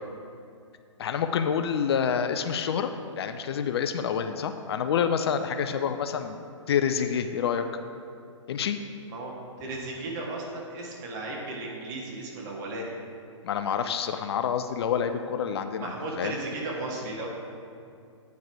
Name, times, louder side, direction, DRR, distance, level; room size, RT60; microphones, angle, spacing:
voice 1, 1.0-2.9 3.2-7.6 8.5-8.8 13.4-16.4, left 7 dB, 55° left, 8 dB, 0.5 m, -28 dB
voice 2, 9.6-12.9 15.8-17.3, right 2 dB, 40° right, -2 dB, 1.7 m, -35 dB
9.2 x 4.7 x 4.7 m, 2.4 s
hypercardioid pair, 135°, 16 cm